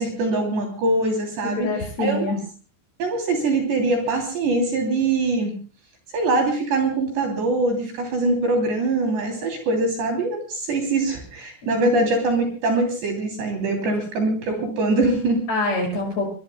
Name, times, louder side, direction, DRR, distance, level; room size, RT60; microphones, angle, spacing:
voice 1, 0.0-1.7 2.0-2.4 3.0-5.5 6.1-15.4, right 2 dB, 60° right, 3 dB, 4.9 m, -23 dB
voice 2, 1.4-2.4 11.7-11.9 13.8-14.0 15.5-16.3, left 3 dB, 30° left, 1 dB, 7.7 m, -25 dB
25.5 x 23.5 x 2.2 m, 0.38 s
omnidirectional pair, 6.0 m